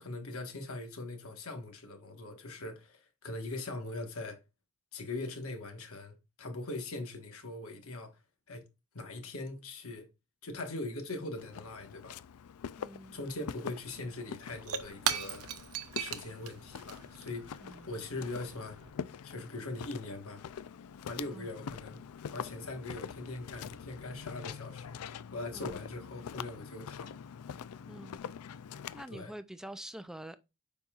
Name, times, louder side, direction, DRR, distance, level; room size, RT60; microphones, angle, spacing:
voice 1, 0.0-4.4 4.9-8.2 8.5-8.6 8.9-10.1 10.4-12.2 13.1-15.5 15.9-18.8 19.2-20.4 21.0-22.0 22.3-25.0 25.3-27.2 29.1-29.3, left 2 dB, 70° left, 1.5 m, -41 dB
Walk footsteps, 11.4-29.1, left 7 dB, 90° left, 0.4 m, -45 dB
voice 2, 12.8-13.2 17.6-17.9 21.3-21.5 25.5-25.8 27.9-28.2 28.9-30.4, right 1 dB, ahead, 0.4 m, -46 dB
Shatter / Crushing, 14.0-18.9, right 8 dB, 85° right, 0.8 m, -39 dB
7.3 x 5.4 x 2.4 m
head